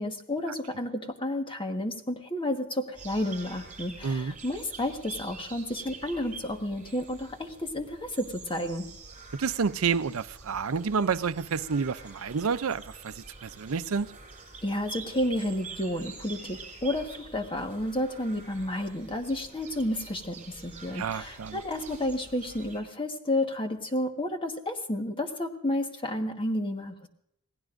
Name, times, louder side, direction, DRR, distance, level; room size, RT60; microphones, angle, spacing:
voice 1, 0.0-8.9 14.6-27.1, left 1 dB, 25° left, 1.4 m, -31 dB
sound 1, 2.9-22.8, right 4 dB, 35° right, 7.4 m, -46 dB
voice 2, 4.0-4.3 9.3-14.1 20.9-21.6, right 5 dB, 80° right, 0.5 m, -29 dB
27.5 x 18.5 x 2.6 m
head